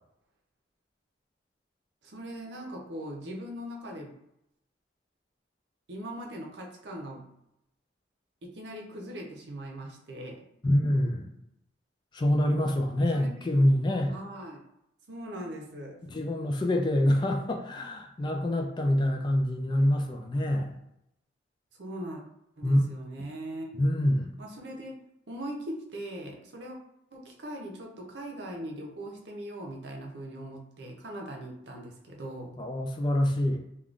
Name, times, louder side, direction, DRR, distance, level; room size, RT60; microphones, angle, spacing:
voice 1, 2.0-4.2 5.9-7.3 8.4-10.5 13.1-13.4 14.1-14.6 15.1-16.0 21.8-22.2 22.6-23.8 24.4-25.0 25.3-26.8 27.1-32.6, right 1 dB, 65° right, 0 dB, 0.6 m, -40 dB
voice 2, 10.6-11.3 12.1-14.1 16.1-20.7 22.6-22.8 23.8-24.3 32.6-33.6, left 1 dB, 25° left, 3 dB, 0.3 m, -26 dB
3.5 x 2.2 x 2.4 m, 0.83 s
head